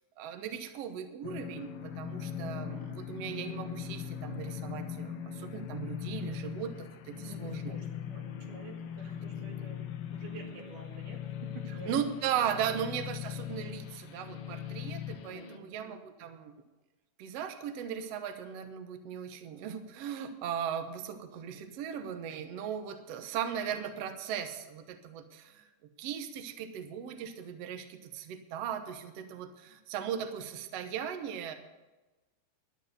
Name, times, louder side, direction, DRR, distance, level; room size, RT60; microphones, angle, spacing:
voice 1, 0.2-7.7 11.9-16.5 17.2-25.7 26.0-31.5, right 8 dB, 65° right, 7 dB, 1.8 m, -37 dB
sound 1, 1.2-15.6, left 9 dB, 80° left, 1.3 m, -40 dB
voice 2, 7.1-11.9 12.6-12.8 15.2-15.7, right 3 dB, 85° right, 0 dB, 3.7 m, -49 dB
11.5 x 10.5 x 6.5 m, 1.1 s
omnidirectional pair, 3.6 m